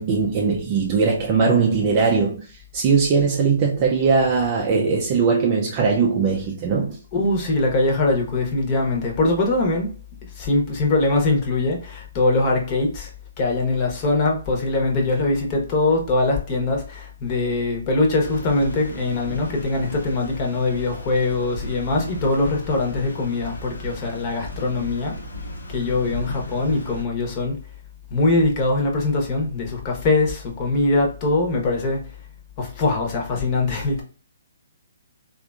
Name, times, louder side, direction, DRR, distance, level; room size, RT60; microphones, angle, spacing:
voice 1, 0.0-7.0, right 5 dB, 35° right, 0.5 m, -20 dB
voice 2, 7.1-9.9 10.4-13.1 13.4-25.1 25.7-27.6 28.1-32.1 32.6-34.0, left 2 dB, 30° left, 1.0 m, -22 dB
sound 1, 18.2-27.0, left 1 dB, 75° left, 1.0 m, -35 dB
3.5 x 2.5 x 2.4 m
figure-of-eight pair, 135°, 0 cm